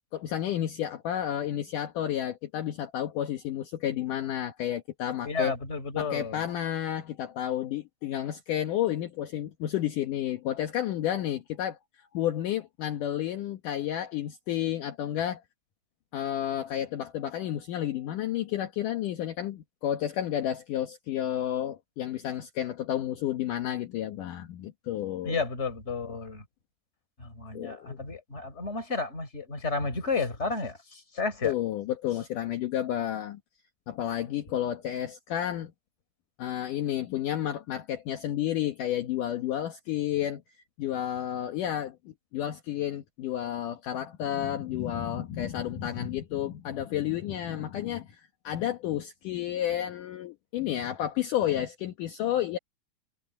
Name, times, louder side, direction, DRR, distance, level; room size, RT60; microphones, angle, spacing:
voice 1, 0.1-5.5 6.0-15.4 16.1-25.4 27.5-28.0 31.4-33.4 33.9-35.7 36.4-40.4 40.8-52.6, left 11 dB, 65° left, 2.6 m, -31 dB
voice 2, 5.2-6.4 25.2-26.4 27.2-31.5, left 4 dB, 15° left, 4.1 m, -32 dB
omnidirectional pair, 4.3 m